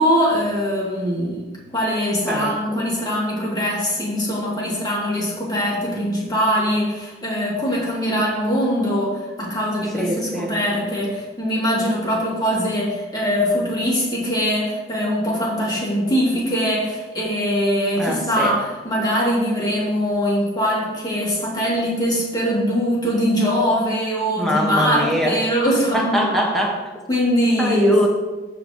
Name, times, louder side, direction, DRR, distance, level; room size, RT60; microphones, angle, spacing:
voice 1, 0.0-26.3 27.1-27.9, equal, 25° left, -6 dB, 3.0 m, -22 dB
voice 2, 2.3-2.8 9.9-10.5 18.0-18.5 24.4-25.4 25.9-26.8 27.6-28.1, equal, ahead, -3 dB, 1.6 m, -22 dB
14.5 x 5.6 x 3.2 m, 1.2 s
head